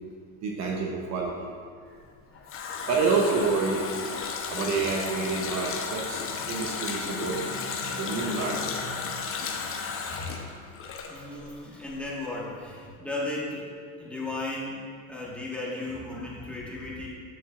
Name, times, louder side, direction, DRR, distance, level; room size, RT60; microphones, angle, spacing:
voice 1, 0.4-1.5 2.9-3.8 4.5-9.0, right 4 dB, 45° right, -1 dB, 1.0 m, -28 dB
Water tap faucet, 2.0-11.6 11.9-12.0, left 5 dB, 35° left, 0.9 m, -34 dB
voice 2, 8.9-10.3 11.0-13.7 14.0-14.8 15.1-17.1, left 2 dB, 5° left, -6 dB, 1.6 m, -36 dB
9.2 x 7.4 x 2.5 m, 2.1 s
supercardioid pair, 115°, 40 cm